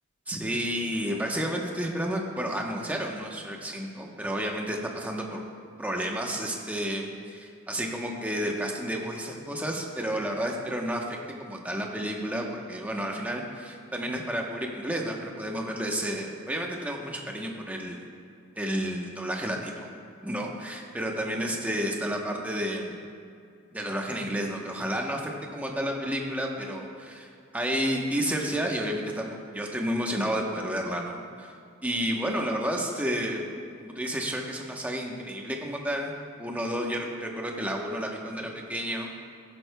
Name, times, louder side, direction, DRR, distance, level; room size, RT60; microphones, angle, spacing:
voice 1, 0.3-5.4 5.8-18.0 18.6-19.9 20.2-22.9 23.7-31.5 31.8-33.4 33.8-36.1 36.4-39.2, equal, 5° right, 0 dB, 0.9 m, -31 dB
15.5 x 11.0 x 2.2 m, 2.3 s
head